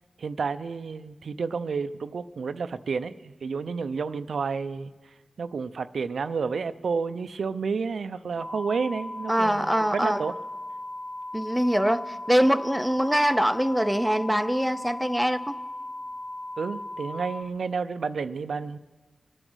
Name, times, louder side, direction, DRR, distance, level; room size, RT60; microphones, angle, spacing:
voice 1, 0.2-4.9 5.4-10.4 16.6-18.8, right 5 dB, 80° right, 11 dB, 0.5 m, -30 dB
sound 1, 8.4-17.4, left 1 dB, 80° left, 2.9 m, -37 dB
voice 2, 9.3-10.2 11.3-15.5, equal, ahead, 9 dB, 0.6 m, -23 dB
26.0 x 8.9 x 6.3 m, 1.3 s
wide cardioid pair, 95°, 0 cm